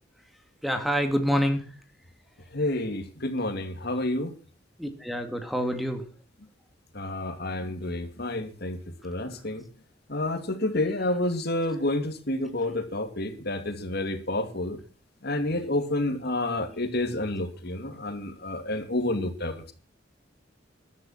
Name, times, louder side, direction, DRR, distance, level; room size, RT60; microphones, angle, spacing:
voice 1, 0.6-1.7 4.8-6.1 9.3-9.4, equal, ahead, 7 dB, 2.0 m, -27 dB
voice 2, 2.5-4.3 6.9-8.8 9.0-9.6 10.1-14.8 15.2-19.7, left 1 dB, 60° left, 8 dB, 2.6 m, -29 dB
14.0 x 12.0 x 5.8 m, 0.38 s
head